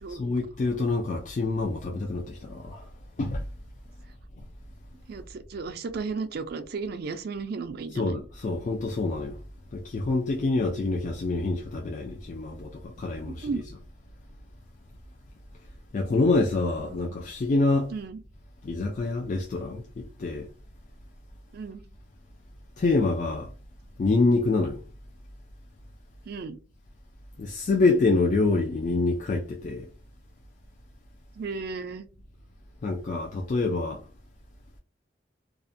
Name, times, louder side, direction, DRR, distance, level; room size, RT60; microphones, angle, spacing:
voice 1, 0.1-2.8 3.2-3.4 8.0-9.4 9.7-13.5 15.9-17.9 18.6-19.8 20.2-20.5 22.8-23.5 24.0-24.8 27.4-29.9 32.8-34.0, left 3 dB, 45° left, 0.4 m, -26 dB
voice 2, 5.1-8.2 10.4-10.6 13.3-13.6 16.8-17.1 17.9-18.2 21.5-21.8 26.3-26.6 31.4-32.1, right 4 dB, 60° right, 0.4 m, -34 dB
2.4 x 2.1 x 2.5 m
head